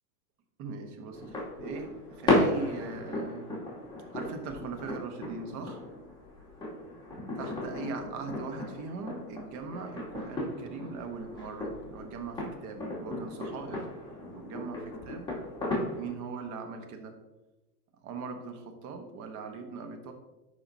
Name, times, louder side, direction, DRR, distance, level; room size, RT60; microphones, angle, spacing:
voice 1, 0.6-3.5 4.1-5.8 7.3-13.9 14.3-15.3 15.9-17.2 18.0-20.1, right 4 dB, 35° right, 5 dB, 1.3 m, -40 dB
sound 1, 1.1-16.1, left 2 dB, 10° left, 2.6 m, -35 dB
11.5 x 4.9 x 2.8 m, 1.0 s
hypercardioid pair, 105°, 47 cm